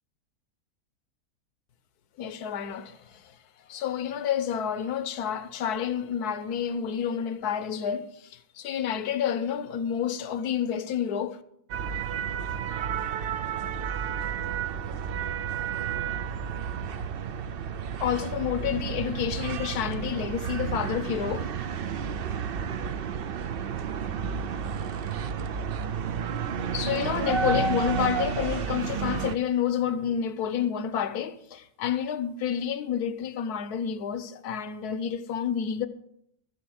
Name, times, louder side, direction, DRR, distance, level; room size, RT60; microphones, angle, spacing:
voice 1, 2.2-3.4 3.7-11.4 18.0-21.9 26.7-35.9, left 8 dB, 80° left, 1.3 m, -29 dB
sound 1, 11.7-29.4, right 7 dB, 60° right, 0.6 m, -31 dB
13.5 x 7.8 x 6.4 m
omnidirectional pair, 1.6 m